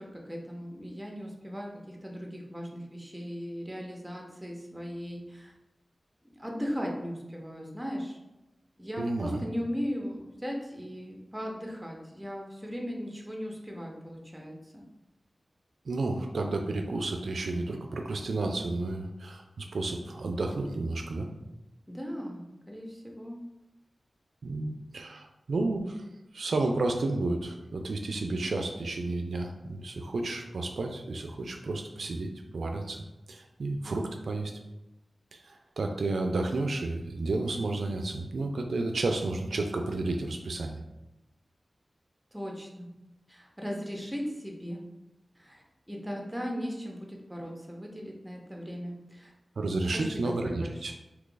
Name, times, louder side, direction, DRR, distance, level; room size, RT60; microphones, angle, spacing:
voice 1, 0.0-5.5 6.3-8.2 8.8-14.8 21.9-23.4 42.3-42.9 43.3-44.8 45.4-49.3 49.9-51.0, equal, 10° right, -1 dB, 0.7 m, -38 dB
voice 2, 9.0-9.4 15.9-21.3 24.4-26.0 26.3-32.3 32.5-33.0 33.3-34.5 35.3-40.8 49.6-50.9, right 2 dB, 80° right, 4 dB, 0.3 m, -31 dB
2.8 x 2.4 x 3.8 m, 0.96 s
wide cardioid pair, 70°, 0 cm